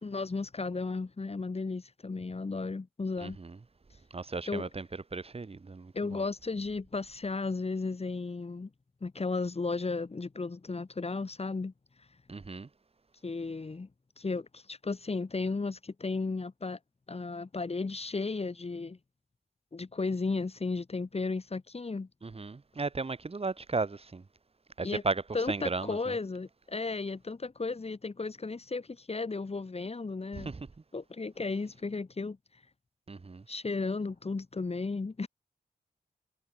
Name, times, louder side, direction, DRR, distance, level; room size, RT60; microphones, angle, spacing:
voice 1, 0.0-3.4 4.5-4.7 5.9-8.7 9.0-11.7 13.2-13.9 14.2-16.8 17.1-19.0 19.7-22.1 24.8-25.0 25.3-30.5 30.9-32.4 33.5-35.3, left 3 dB, 35° left, 2.7 m, -34 dB
voice 2, 3.2-3.6 4.1-6.2 12.3-12.7 22.2-24.2 24.8-26.1 30.3-30.7 33.1-33.4, right 3 dB, 35° right, 1.9 m, -35 dB
cardioid pair, 75°, 17 cm